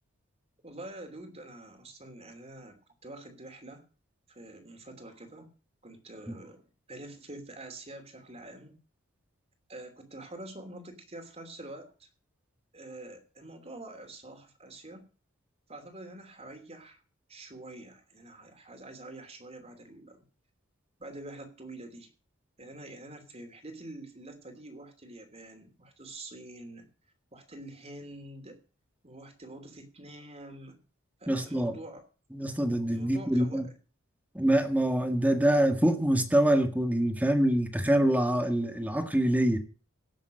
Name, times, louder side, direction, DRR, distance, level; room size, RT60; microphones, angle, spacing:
voice 1, 0.6-3.8 4.3-5.5 5.8-6.6 6.9-8.7 9.7-12.1 12.7-15.0 15.7-17.0 17.3-20.2 21.0-22.1 22.6-26.9 27.3-28.6 29.0-30.8 31.2-32.1 32.9-33.7, right 1 dB, 30° right, 2.9 m, -46 dB
voice 2, 31.3-31.8 32.3-33.6 34.3-39.6, right 1 dB, 10° right, 1.7 m, -25 dB
17.5 x 7.2 x 6.4 m
head